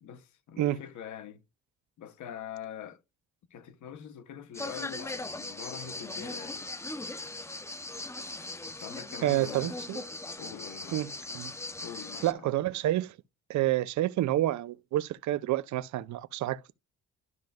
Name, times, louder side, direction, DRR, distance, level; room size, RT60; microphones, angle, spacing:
voice 1, 0.0-1.4 2.0-3.0 3.5-6.7 8.8-9.9 10.4-11.0 11.8-12.5, left 9 dB, 75° left, 0.9 m, -44 dB
sound 1, 4.5-12.3, left 2 dB, 10° left, 0.6 m, -39 dB
voice 2, 9.2-10.0 10.9-11.5 12.2-13.1 13.5-16.7, right 14 dB, 70° right, 0.5 m, -29 dB
12.5 x 5.2 x 2.3 m
cardioid pair, 90°, 30 cm